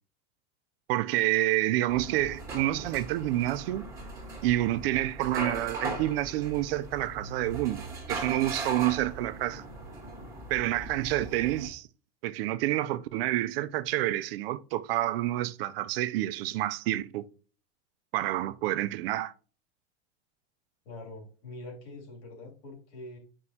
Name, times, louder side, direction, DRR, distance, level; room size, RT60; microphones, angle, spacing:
voice 1, 0.9-3.9 4.4-9.6 10.5-11.9 12.2-17.3 18.1-19.3, right 15 dB, 60° right, 0.5 m, -28 dB
sound 1, 1.9-11.7, right 2 dB, 10° right, 1.6 m, -39 dB
voice 2, 20.8-23.2, left 2 dB, 65° left, 2.8 m, -44 dB
9.5 x 5.4 x 2.8 m
supercardioid pair, 175°, 33 cm